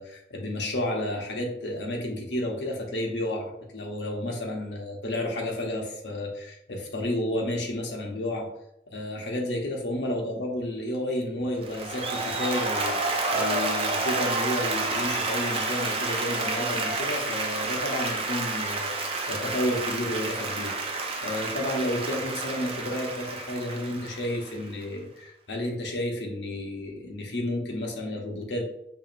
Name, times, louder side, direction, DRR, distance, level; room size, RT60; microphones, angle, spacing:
voice 1, 0.0-8.5 8.9-28.6, left 1 dB, 90° left, 0 dB, 0.9 m, -31 dB
Applause, 11.6-24.8, right 3 dB, 35° right, 0.5 m, -30 dB
4.8 x 3.0 x 2.6 m, 0.79 s
head